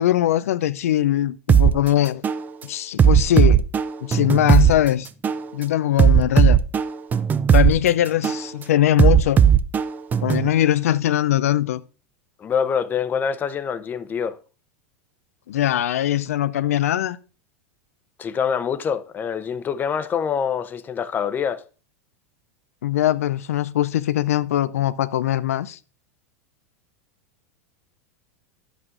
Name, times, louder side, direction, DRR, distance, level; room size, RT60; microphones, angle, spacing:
voice 1, 0.0-2.2 2.6-3.6 4.0-5.1 5.5-6.6 7.5-9.4 10.2-11.8 15.5-17.2 22.8-25.8, left 12 dB, 85° left, 0.4 m, -21 dB
sound 1, 1.5-1.7 2.2-2.4 3.0-4.7 5.2-5.4 6.0-7.7 8.2-8.4 9.0-10.5, right 8 dB, 25° right, 0.5 m, -16 dB
voice 2, 12.4-14.4 18.2-21.6, left 7 dB, 25° left, 0.6 m, -25 dB
11.0 x 8.1 x 2.5 m
hypercardioid pair, 115°, 8 cm